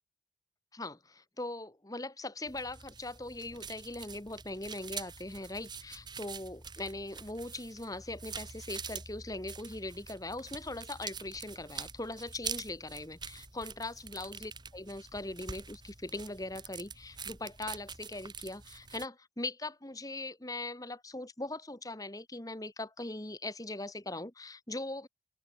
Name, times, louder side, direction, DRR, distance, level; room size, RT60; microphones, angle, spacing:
voice 1, 0.7-25.1, left 2 dB, 20° left, 1.9 m, -40 dB
sound 1, 2.5-19.0, right 6 dB, 25° right, 2.7 m, -45 dB
open air
head